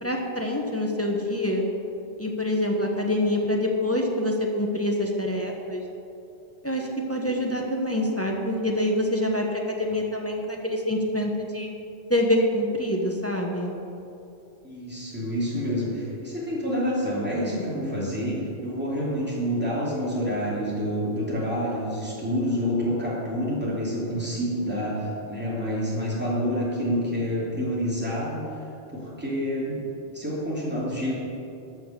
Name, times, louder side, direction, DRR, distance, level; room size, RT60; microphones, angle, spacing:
voice 1, 0.0-1.7 2.2-5.8 6.6-11.7 12.1-13.7, left 1 dB, 15° left, 0 dB, 1.0 m, -26 dB
voice 2, 14.6-28.5 28.9-29.8 30.1-31.1, equal, 10° right, -7 dB, 2.8 m, -28 dB
13.5 x 5.8 x 6.8 m, 2.8 s
omnidirectional pair, 1.2 m